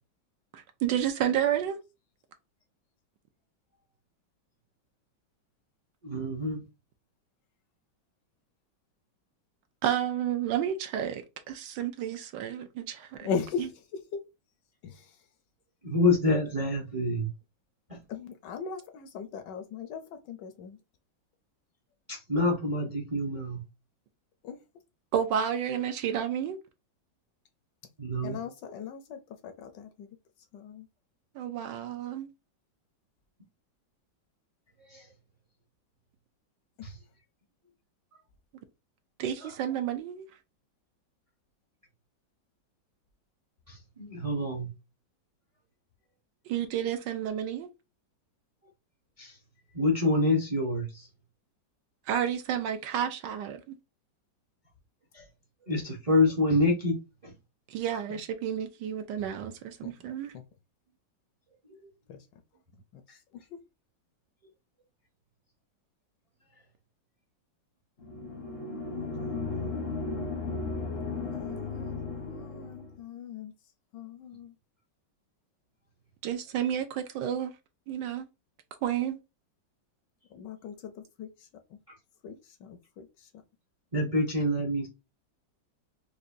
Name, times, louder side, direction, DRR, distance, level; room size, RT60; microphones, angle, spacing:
voice 1, 0.5-1.8 9.8-13.3 25.1-26.6 31.3-32.3 39.2-40.3 46.5-47.7 52.1-53.8 57.7-60.3 76.2-77.5 77.9-78.3 78.8-79.2, right 9 dB, 75° right, 1.1 m, -31 dB
voice 2, 6.0-6.6 15.8-17.3 17.9-18.0 22.1-23.6 28.0-28.4 34.9-35.1 36.8-36.9 39.4-39.5 43.7-44.7 49.2-49.4 49.7-51.1 55.1-55.3 55.7-56.9 57.2-57.3 61.7-61.8 83.9-84.9, left 2 dB, 40° right, 0.5 m, -27 dB
voice 3, 13.2-14.2 14.8-15.2 18.1-20.8 24.4-24.6 28.2-30.1 30.5-30.9 36.8-36.9 58.1-58.2 59.8-59.9 60.3-60.4 62.1-62.2 62.9-63.6 69.0-70.3 71.1-73.5 73.9-74.5 80.3-81.8 82.2-83.3, left 6 dB, 75° left, 1.1 m, -40 dB
sound 1, 68.0-72.9, left 3 dB, 55° left, 0.7 m, -35 dB
4.8 x 2.2 x 2.5 m
omnidirectional pair, 2.1 m